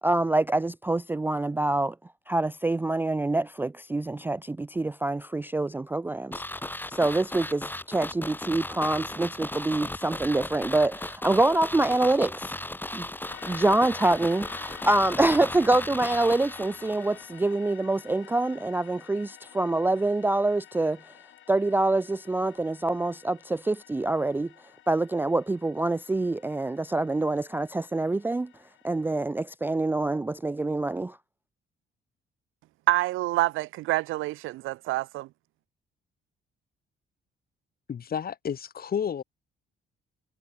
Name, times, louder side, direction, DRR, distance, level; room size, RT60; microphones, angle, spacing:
voice 1, 0.0-2.0 2.3-6.4 6.9-12.6 12.9-13.1 13.5-21.0 21.5-24.5 24.9-28.5 28.8-31.2, right 2 dB, 10° right, 0.3 m, -26 dB
sound 1, 6.3-17.3 17.5-17.6, left 1 dB, 10° left, 6.8 m, -36 dB
sound 2, 13.3-29.2, left 12 dB, 75° left, 7.6 m, -50 dB
voice 2, 32.9-35.3, right 18 dB, 90° right, 0.7 m, -27 dB
voice 3, 37.9-39.2, left 8 dB, 50° left, 2.0 m, -31 dB
cardioid pair, 90°, 20 cm